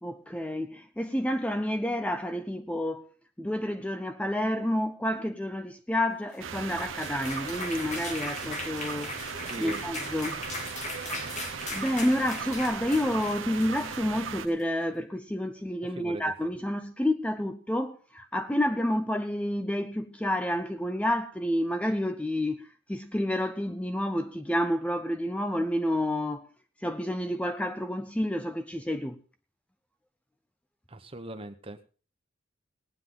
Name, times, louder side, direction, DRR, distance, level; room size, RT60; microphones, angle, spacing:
voice 1, 0.0-3.1 3.4-9.1 9.6-10.4 11.7-26.5 26.8-29.2, left 1 dB, 5° left, 0.5 m, -29 dB
sound 1, 6.3-14.6, left 2 dB, 40° left, 2.3 m, -39 dB
sound 2, 6.4-14.5, right 6 dB, 90° right, 0.9 m, -38 dB
voice 2, 9.5-9.8 15.9-16.2 30.9-31.8, right 2 dB, 30° right, 1.0 m, -40 dB
18.5 x 9.5 x 3.8 m
head